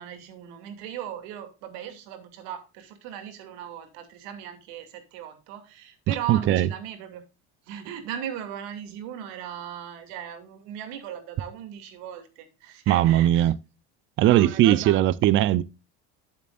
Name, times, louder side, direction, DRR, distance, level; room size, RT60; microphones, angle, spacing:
voice 1, 0.0-7.2 7.7-13.5 14.2-15.0, right 9 dB, 80° right, 2.6 m, -38 dB
voice 2, 6.1-6.7 12.9-13.6 14.2-15.6, right 13 dB, 40° right, 0.6 m, -20 dB
12.5 x 7.3 x 2.5 m
cardioid pair, 140°, 31 cm